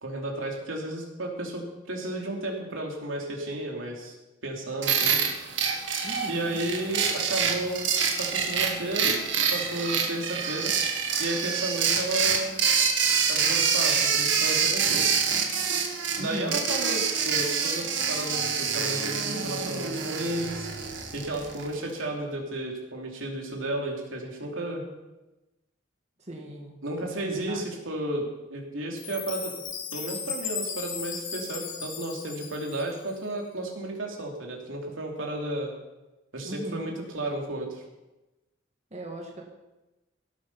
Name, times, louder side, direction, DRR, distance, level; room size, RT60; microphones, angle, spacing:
voice 1, 0.0-4.1 4.4-5.2 6.3-7.9 8.2-9.2 9.5-10.7 11.2-12.6 13.3-15.1 16.2-20.7 21.1-24.8 26.8-29.5 29.9-35.7 36.3-37.8, right 1 dB, 85° right, 0 dB, 3.0 m, -33 dB
sound 1, 4.8-21.8, right 6 dB, 70° right, 1.8 m, -26 dB
voice 2, 6.0-6.6 16.2-16.6 26.2-26.7 27.5-27.6 36.4-36.9 38.9-39.4, right 1 dB, 35° right, 0 dB, 1.6 m, -38 dB
Chime, 29.0-33.2, left 7 dB, 80° left, 2.0 m, -36 dB
17.0 x 8.8 x 5.7 m, 1.0 s
head